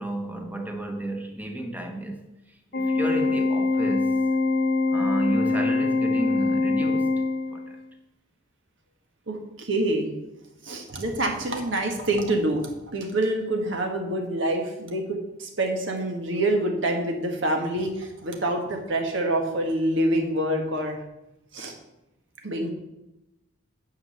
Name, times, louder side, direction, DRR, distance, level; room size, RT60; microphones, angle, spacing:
voice 1, 0.0-2.3 2.7-4.2 4.9-7.1 7.5-7.8, right 1 dB, 10° right, 1.2 m, -32 dB
Organ, 2.7-7.8, left 3 dB, 50° left, 0.9 m, -23 dB
voice 2, 3.0-3.4 9.3-10.1 10.6-21.0 21.5-21.7 22.4-22.7, right 1 dB, 60° right, 1.6 m, -26 dB
9.6 x 5.4 x 7.8 m
head